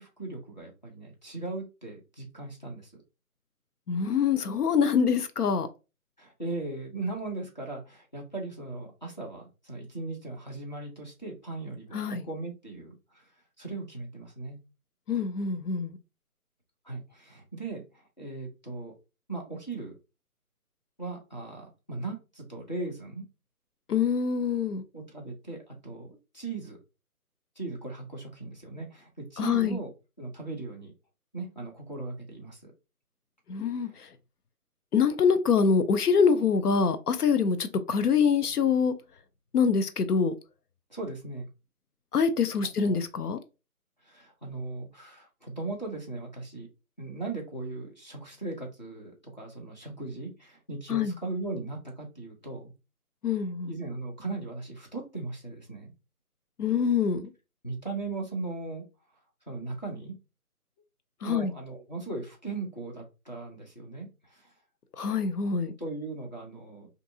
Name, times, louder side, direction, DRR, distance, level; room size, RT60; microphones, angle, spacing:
voice 1, 0.0-2.9 6.2-13.3 13.6-14.6 16.8-18.9 19.3-19.9 21.0-23.2 24.9-26.8 27.6-29.9 30.2-30.9 31.3-32.7 33.7-34.0 40.9-41.5 42.8-43.0 44.0-46.7 47.0-52.7 53.4-55.9 57.6-58.8 59.5-60.1 61.2-64.5 65.8-66.9, right 3 dB, 30° left, 0.7 m, -38 dB
voice 2, 3.9-5.7 11.9-12.2 15.1-16.0 23.9-24.8 29.4-29.8 33.5-34.1 34.9-38.9 39.5-40.3 42.1-43.4 50.9-51.1 53.2-53.8 56.6-57.2 61.2-61.5 65.0-65.7, left 6 dB, 85° left, 0.7 m, -25 dB
3.4 x 2.6 x 2.7 m
figure-of-eight pair, 170°, 45 cm